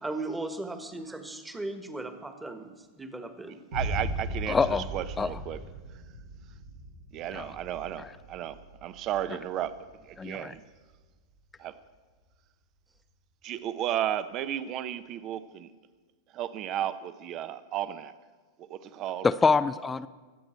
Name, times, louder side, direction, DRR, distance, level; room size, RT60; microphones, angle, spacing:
voice 1, 0.0-3.6, right 2 dB, 10° right, 1.4 m, -37 dB
voice 2, 3.7-5.6 7.1-9.7 10.0-10.6 11.6-11.8 13.4-15.7 16.3-18.1 18.6-19.3, right 11 dB, 40° right, 0.7 m, -34 dB
Boom, 3.7-11.5, right 1 dB, 65° right, 1.8 m, -39 dB
voice 3, 4.5-4.9 5.2-5.3 7.3-7.5 8.0-8.1 10.2-10.5 19.2-20.1, left 4 dB, 15° left, 0.4 m, -25 dB
23.0 x 8.0 x 4.5 m
hypercardioid pair, 100°, 0 cm